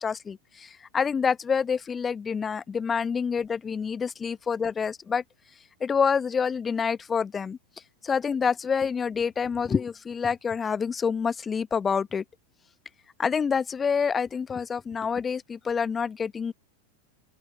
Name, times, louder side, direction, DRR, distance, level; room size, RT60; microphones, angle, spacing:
voice 1, 0.0-5.2 5.8-7.6 8.0-12.2 13.2-16.5, left 6 dB, 20° left, 1.4 m, -27 dB
open air
figure-of-eight pair, 90°, 0 cm